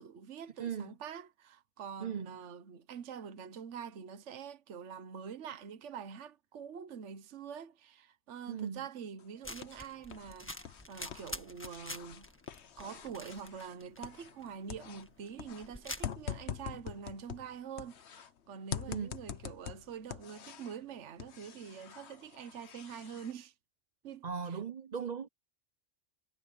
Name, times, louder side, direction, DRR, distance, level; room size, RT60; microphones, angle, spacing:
voice 1, 0.0-12.3 12.8-23.5 24.0-24.6, right 7 dB, 65° right, 1.3 m, -45 dB
voice 2, 0.6-0.9 2.0-2.4 8.5-8.8 18.9-19.1 24.2-25.3, right 7 dB, 45° right, 0.6 m, -38 dB
sound 1, 9.2-10.3 10.6-14.4 14.7-18.3 18.7-20.8 21.2-23.3, left 9 dB, 60° left, 1.1 m, -45 dB
sound 2, 9.4-16.1, left 1 dB, 10° left, 1.6 m, -47 dB
omnidirectional pair, 1.3 m